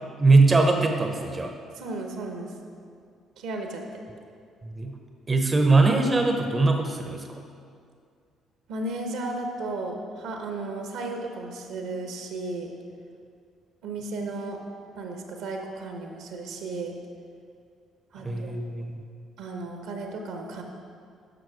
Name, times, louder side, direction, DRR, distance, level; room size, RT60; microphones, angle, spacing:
voice 1, 0.2-1.5 4.8-4.9 5.3-7.4 14.0-14.3 18.2-19.0, right 3 dB, 25° right, 4 dB, 0.9 m, -21 dB
voice 2, 1.8-2.5 3.4-4.0 8.7-12.7 13.8-14.6 14.9-16.9 18.1-18.5 19.4-20.6, right 2 dB, 60° right, 3 dB, 1.1 m, -34 dB
11.0 x 6.4 x 5.0 m, 2.3 s
figure-of-eight pair, 45°, 0 cm